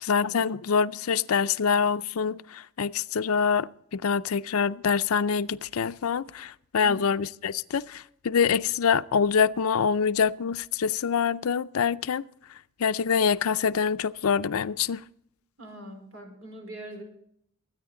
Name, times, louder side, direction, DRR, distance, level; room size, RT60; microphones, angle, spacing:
voice 1, 0.0-12.2 12.8-15.0, left 6 dB, 90° left, 0.5 m, -25 dB
voice 2, 15.6-17.0, right 1 dB, 75° right, 4.5 m, -42 dB
23.0 x 9.6 x 3.8 m
head